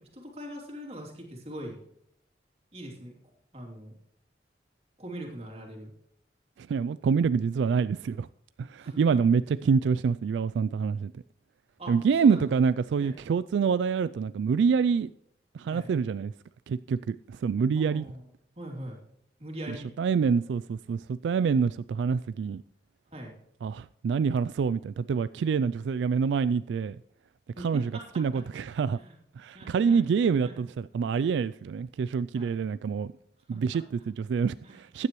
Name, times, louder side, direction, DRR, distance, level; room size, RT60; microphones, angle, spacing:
voice 1, 0.0-1.8 2.7-3.2 3.5-3.9 5.0-5.9 8.8-9.2 11.8-12.5 13.0-13.2 15.6-15.9 17.7-18.2 18.6-19.0 19.4-19.9 23.1-23.3 27.6-28.0 28.9-29.2 29.5-30.0 30.4-30.5 32.3-32.5 33.5-33.8 34.6-34.8, right 1 dB, 35° right, 2.9 m, -41 dB
voice 2, 6.6-8.3 8.6-11.2 11.9-15.1 15.5-16.3 16.7-18.0 20.0-22.6 23.6-27.0 27.6-27.9 28.2-29.0 29.4-33.1 33.5-35.1, right 6 dB, 85° right, 0.3 m, -26 dB
15.0 x 9.7 x 3.1 m
head